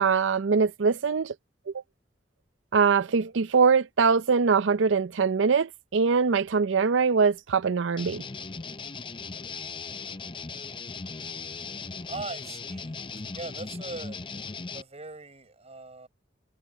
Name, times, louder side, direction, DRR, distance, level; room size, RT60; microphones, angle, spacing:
voice 1, 0.0-1.3 1.7-1.8 2.7-8.2, right 5 dB, 75° right, 0.5 m, -23 dB
sound 1, 8.0-14.8, left 4 dB, 25° left, 0.6 m, -38 dB
voice 2, 12.1-12.9 13.3-14.2 14.7-16.1, right 3 dB, 35° right, 5.9 m, -40 dB
head